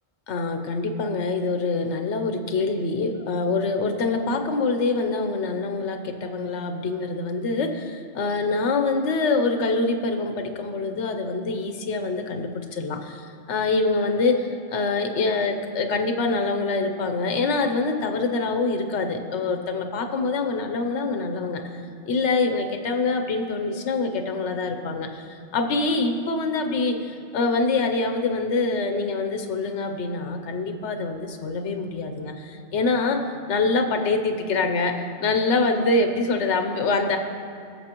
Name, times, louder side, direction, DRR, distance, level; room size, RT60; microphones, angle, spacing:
voice 1, 0.3-21.6 22.1-33.2 33.5-37.2, left 3 dB, 75° left, 6 dB, 1.1 m, -25 dB
18.5 x 6.8 x 3.0 m, 2.5 s
omnidirectional pair, 1.2 m